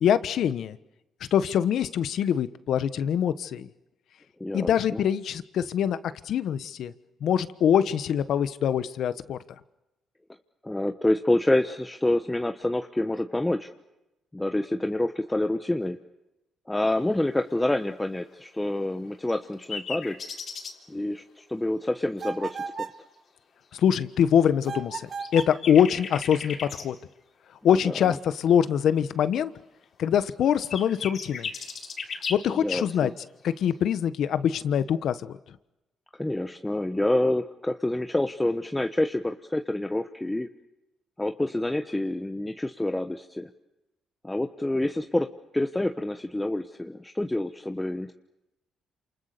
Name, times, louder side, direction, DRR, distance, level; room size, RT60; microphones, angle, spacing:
voice 1, 0.0-0.8 1.3-3.7 4.5-6.0 6.2-6.9 7.2-9.4 23.7-26.9 27.6-29.5 30.0-31.5 32.3-33.1 33.4-35.4, left 9 dB, 70° left, 13 dB, 1.3 m, -24 dB
voice 2, 4.4-5.0 10.6-13.7 14.3-16.0 16.7-20.2 20.9-22.9 27.8-28.2 32.5-33.1 36.1-40.5 41.2-43.5 44.2-48.1, left 1 dB, 10° left, 6 dB, 1.2 m, -27 dB
sound 1, 19.3-20.7 24.9-25.0 25.2-26.9 30.3-32.4, left 5 dB, 55° left, 4.0 m, -36 dB
sound 2, 22.2-23.0 24.6-25.6, right 5 dB, 50° right, 1.7 m, -35 dB
28.5 x 28.0 x 6.9 m, 0.95 s
cardioid pair, 90°, 0 cm